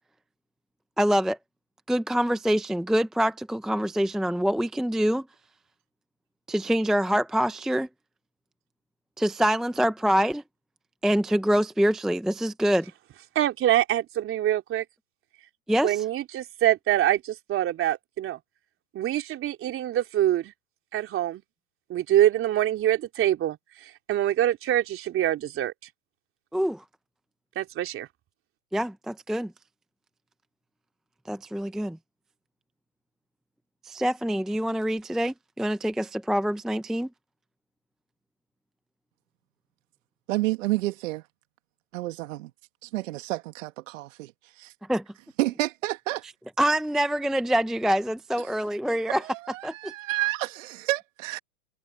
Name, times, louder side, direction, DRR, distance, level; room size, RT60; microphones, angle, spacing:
voice 1, 1.0-1.4 1.9-5.3 6.5-7.9 9.2-10.4 11.0-12.9 15.7-16.0 26.5-26.8 28.7-29.5 31.3-32.0 33.8-37.1 44.9-45.0 46.6-49.2 49.6-49.9, equal, ahead, 0.6 m, -25 dB
voice 2, 13.3-14.8 15.8-18.4 18.9-20.5 20.9-21.4 21.9-25.7 27.5-28.1, right 12 dB, 30° right, 3.4 m, -25 dB
voice 3, 40.3-41.2 41.9-42.5 42.8-44.3 44.6-44.7 45.4-46.2 49.1-51.4, right 18 dB, 55° right, 1.9 m, -30 dB
hypercardioid pair, 130°, 45 cm